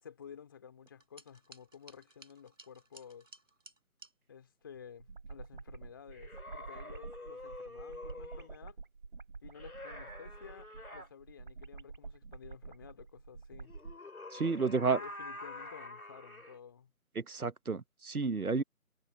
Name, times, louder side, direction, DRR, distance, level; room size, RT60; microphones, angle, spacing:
voice 1, 0.0-3.3 4.3-8.8 9.4-13.7 14.4-16.9, left 7 dB, 15° left, 2.6 m, -53 dB
sound 1, 0.9-4.1, right 1 dB, 60° right, 5.2 m, -57 dB
sound 2, 4.7-14.0, right 4 dB, 40° right, 7.8 m, -48 dB
sound 3, 6.1-8.5 9.5-11.1 13.6-16.6, left 2 dB, 80° left, 2.5 m, -47 dB
voice 2, 14.3-15.0 17.2-18.6, right 4 dB, 85° right, 1.0 m, -31 dB
figure-of-eight pair, 160°, 43 cm